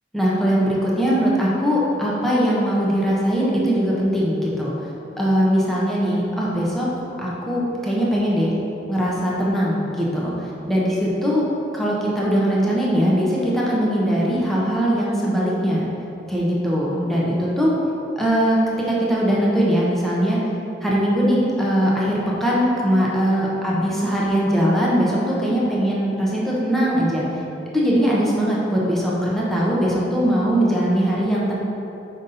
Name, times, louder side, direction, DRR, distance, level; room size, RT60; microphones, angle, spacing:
voice 1, 0.1-4.7 5.2-6.9 7.2-8.5 8.9-11.4 11.7-15.9 16.3-17.7 18.2-20.4 20.8-27.2 27.7-31.5, equal, ahead, -6 dB, 0.9 m, -20 dB
5.3 x 5.2 x 4.1 m, 2.9 s
head